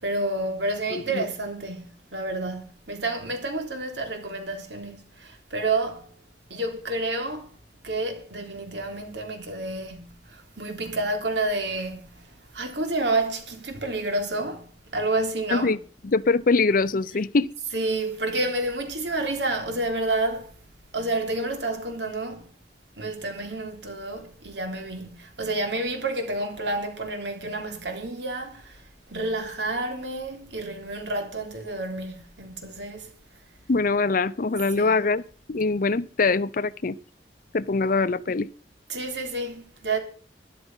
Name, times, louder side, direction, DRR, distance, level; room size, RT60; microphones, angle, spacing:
voice 1, 0.0-1.8 2.1-6.1 6.5-7.5 7.8-12.3 12.5-15.8 17.7-20.5 20.8-22.5 23.0-28.8 29.1-33.1 34.7-35.0 38.9-40.0, right 2 dB, 85° right, 3.4 m, -29 dB
voice 2, 0.9-1.3 15.5-15.8 16.0-17.5 33.7-35.2 35.5-37.0 37.5-38.5, left 3 dB, 50° left, 0.6 m, -23 dB
13.5 x 11.0 x 5.6 m
head